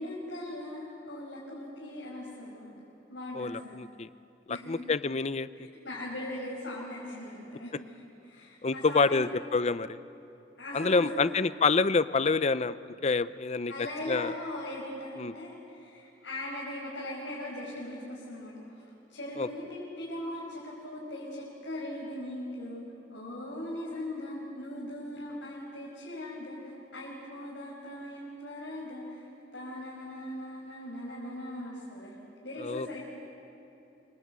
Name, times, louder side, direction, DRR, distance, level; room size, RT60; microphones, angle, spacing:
voice 1, 0.0-2.7 3.1-3.8 4.5-4.8 5.6-9.2 10.6-11.3 13.7-18.8 19.1-22.8 23.1-29.3 29.5-32.1 32.4-33.0, left 1 dB, 85° left, -5 dB, 5.4 m, -39 dB
voice 2, 3.3-4.1 4.5-5.5 8.6-10.0 10.7-14.3 15.2-15.3 19.4-19.5 32.6-33.0, left 4 dB, 35° left, 15 dB, 0.6 m, -27 dB
26.5 x 24.5 x 8.3 m, 3.0 s
head